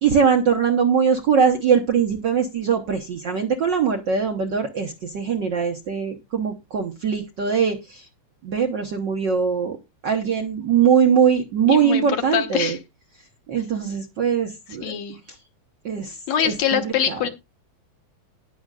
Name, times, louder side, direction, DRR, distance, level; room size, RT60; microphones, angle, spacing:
voice 1, 0.0-8.1 8.4-9.8 10.0-12.8 13.5-14.9 15.8-17.2, right 7 dB, 70° right, 4 dB, 1.0 m, -21 dB
voice 2, 11.7-12.0 12.3-12.8 14.8-15.2 16.3-17.3, left 9 dB, 70° left, 6 dB, 2.2 m, -23 dB
19.0 x 6.4 x 2.4 m, 0.23 s
omnidirectional pair, 3.4 m